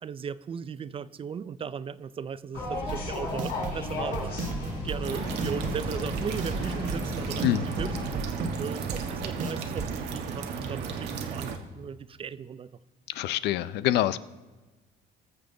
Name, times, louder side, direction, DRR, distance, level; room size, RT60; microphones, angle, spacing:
voice 1, 0.0-4.3 4.8-12.7, right 7 dB, 35° right, 16 dB, 0.4 m, -37 dB
sound 1, 2.5-8.1, left 3 dB, 65° left, 4.3 m, -35 dB
sound 2, 2.9-9.9, right 4 dB, 50° right, 1.2 m, -35 dB
sound 3, 5.0-11.6, right 6 dB, 80° right, 1.3 m, -35 dB
voice 2, 13.1-14.2, left 13 dB, 80° left, 16 dB, 0.5 m, -26 dB
20.0 x 7.1 x 3.8 m, 1.2 s
cardioid pair, 110°, 17 cm